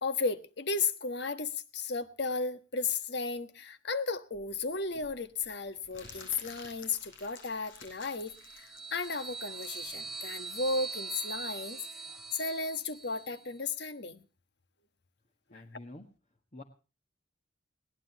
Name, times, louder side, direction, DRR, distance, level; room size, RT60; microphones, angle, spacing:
voice 1, 0.0-14.2 15.5-15.6, left 4 dB, 60° left, 1.3 m, -34 dB
Crumpling crinkling, 4.3-11.4, left 3 dB, 80° left, 7.4 m, -53 dB
sound 1, 8.0-13.5, right 4 dB, ahead, 1.0 m, -42 dB
voice 2, 15.5-16.1 16.5-16.6, left 2 dB, 35° left, 1.5 m, -47 dB
22.0 x 17.5 x 3.0 m
head